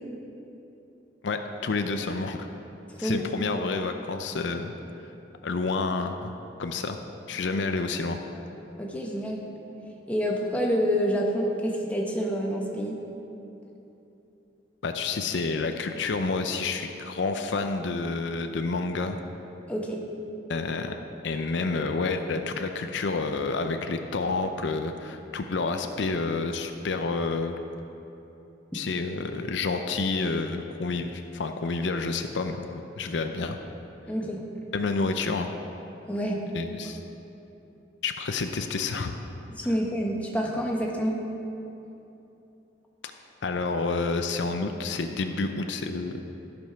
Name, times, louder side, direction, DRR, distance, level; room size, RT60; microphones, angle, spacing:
voice 1, 1.2-2.4 3.0-4.7 5.0-5.1 5.4-6.3 6.6-7.0 7.3-8.2 14.8-19.2 20.5-21.0 21.2-27.6 28.7-33.6 34.7-35.5 36.5-37.0 38.0-39.1 43.0-43.1 43.4-46.2, left 3 dB, 70° left, 6 dB, 0.5 m, -29 dB
voice 2, 2.9-3.3 8.8-9.4 10.1-13.0 19.7-20.0 34.1-34.4 36.1-36.4 39.5-41.2, equal, 10° left, -1 dB, 1.1 m, -27 dB
13.0 x 5.3 x 5.7 m, 2.9 s
head